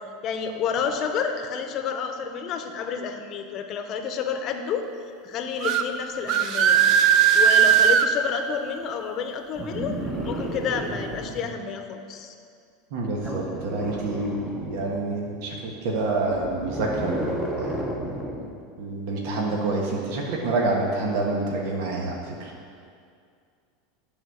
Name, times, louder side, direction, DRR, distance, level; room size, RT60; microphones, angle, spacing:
voice 1, 0.2-4.9 5.2-6.8 7.3-10.0 10.2-12.3, left 6 dB, 40° left, 6 dB, 0.8 m, -30 dB
sound 1, 5.6-5.8 6.3-8.1, right 8 dB, 50° right, 0.5 m, -18 dB
sound 2, 9.6-11.5 13.2-15.0 16.3-18.5 19.9-20.0, right 1 dB, 10° right, 1.0 m, -32 dB
voice 2, 12.9-17.7 18.8-22.5, right 2 dB, 65° right, -1 dB, 1.4 m, -27 dB
11.0 x 4.2 x 6.3 m, 2.3 s
supercardioid pair, 135°, 0 cm